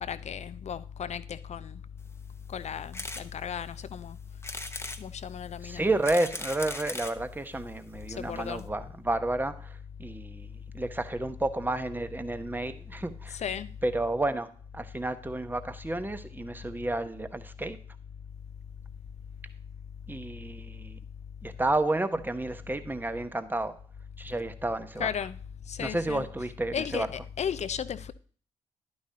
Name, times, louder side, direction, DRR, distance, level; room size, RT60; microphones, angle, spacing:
voice 1, 0.0-1.8 2.5-4.2 5.0-5.9 8.1-8.7 13.3-13.7 25.0-25.4 25.7-26.3 26.7-28.1, left 8 dB, 45° left, 0.6 m, -35 dB
sound 1, 2.9-3.3 3.7-3.8 4.4-5.0 5.8-7.2 8.0-8.1 8.3-8.4 8.6-8.7, left 2 dB, 15° left, 1.0 m, -38 dB
voice 2, 5.6-10.5 10.7-13.4 13.8-17.8 20.1-21.0 21.4-23.8 24.2-25.1 25.8-27.1, right 2 dB, 10° right, 1.0 m, -31 dB
11.0 x 9.6 x 2.8 m
figure-of-eight pair, 40°, 16 cm